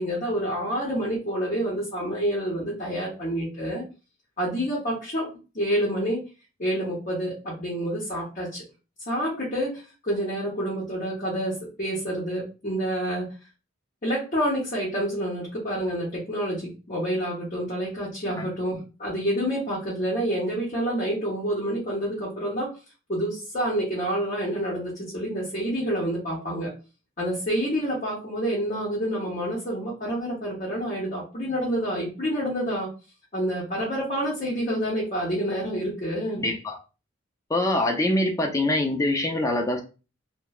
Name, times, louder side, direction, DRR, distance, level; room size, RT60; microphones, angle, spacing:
voice 1, 0.0-3.8 4.4-6.2 6.6-8.6 9.1-13.3 14.0-22.7 23.1-26.7 27.2-32.9 33.3-36.4, equal, 40° left, -6 dB, 0.8 m, -28 dB
voice 2, 36.4-36.8 37.5-39.8, left 1 dB, 15° left, 3 dB, 0.4 m, -24 dB
3.0 x 2.1 x 2.3 m, 0.32 s
head